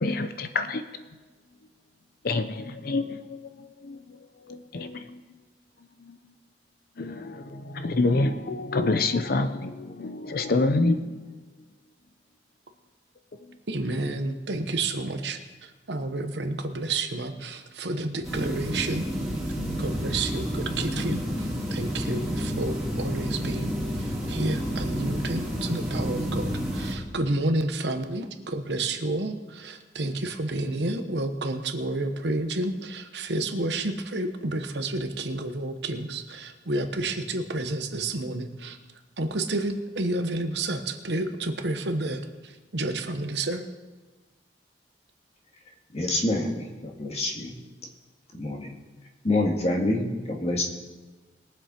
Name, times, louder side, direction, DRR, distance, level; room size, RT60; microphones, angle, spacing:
voice 1, 0.0-0.8 2.2-4.2 4.5-5.2 6.0-6.2 7.0-11.2, left 2 dB, 55° left, 9 dB, 0.7 m, -27 dB
voice 2, 13.7-19.0 19.8-23.7 24.0-38.8 39.2-43.6, right 2 dB, 75° right, 7 dB, 1.1 m, -30 dB
sound 1, 18.2-26.9, equal, ahead, 2.8 m, -30 dB
voice 3, 45.9-47.5 48.3-48.7 49.2-50.6, left 2 dB, 35° left, 1 dB, 1.9 m, -26 dB
21.5 x 7.6 x 4.4 m, 1.3 s
head